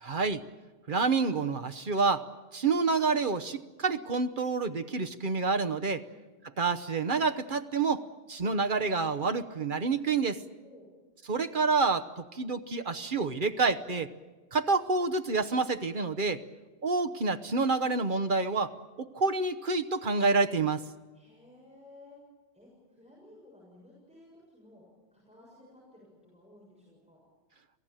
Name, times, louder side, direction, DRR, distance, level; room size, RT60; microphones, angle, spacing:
voice 1, 0.0-0.4 0.9-2.2 2.5-6.0 6.6-8.0 8.3-10.4 11.3-14.1 14.5-16.4 16.8-18.7 19.0-20.8, right 4 dB, 50° right, 9 dB, 1.1 m, -28 dB
voice 2, 10.6-10.9 21.1-22.2 22.5-27.2, left 2 dB, 5° right, -5 dB, 7.2 m, -56 dB
27.5 x 18.0 x 9.0 m, 1.3 s
omnidirectional pair, 1.1 m